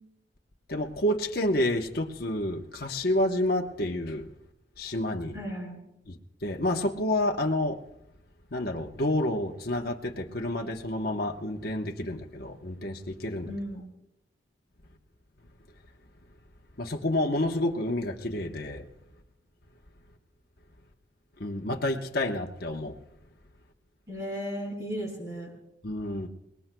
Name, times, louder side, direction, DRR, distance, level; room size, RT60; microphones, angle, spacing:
voice 1, 0.7-4.3 4.8-5.4 6.1-7.8 8.5-13.5 16.8-18.8 21.4-23.0 25.8-26.3, left 1 dB, 50° left, 1.0 m, -29 dB
voice 2, 5.3-5.8 13.5-13.8 24.1-25.5, equal, 20° right, 7.0 m, -35 dB
28.5 x 19.0 x 2.3 m
head